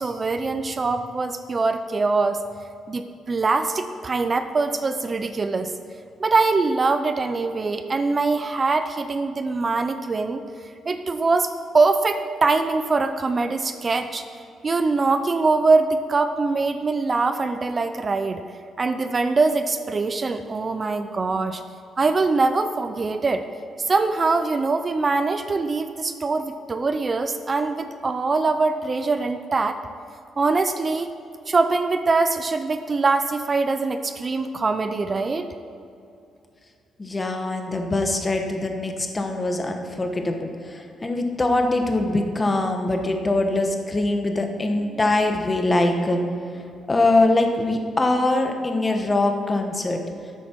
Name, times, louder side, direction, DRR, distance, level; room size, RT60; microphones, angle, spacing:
voice 1, 0.0-2.4 2.9-5.7 6.2-10.4 10.9-14.2 14.6-18.4 18.8-21.6 22.0-23.5 23.8-29.8 30.4-31.1 31.5-35.5, right 3 dB, 35° right, 9 dB, 0.5 m, -23 dB
voice 2, 37.0-46.2 46.9-50.0, left 2 dB, 25° left, 4 dB, 1.3 m, -23 dB
12.5 x 8.4 x 4.6 m, 2.5 s
cardioid pair, 90°, 0 cm